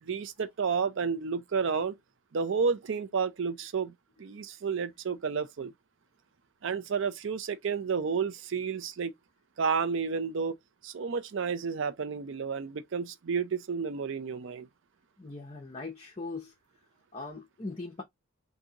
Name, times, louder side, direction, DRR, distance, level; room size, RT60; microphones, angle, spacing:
voice 1, 0.0-2.0 2.3-5.7 6.6-9.1 9.6-10.6 10.8-14.7, right 5 dB, 55° right, 0.4 m, -31 dB
voice 2, 15.2-16.5 17.1-18.0, left 3 dB, 25° left, 0.6 m, -40 dB
3.7 x 2.7 x 2.8 m
head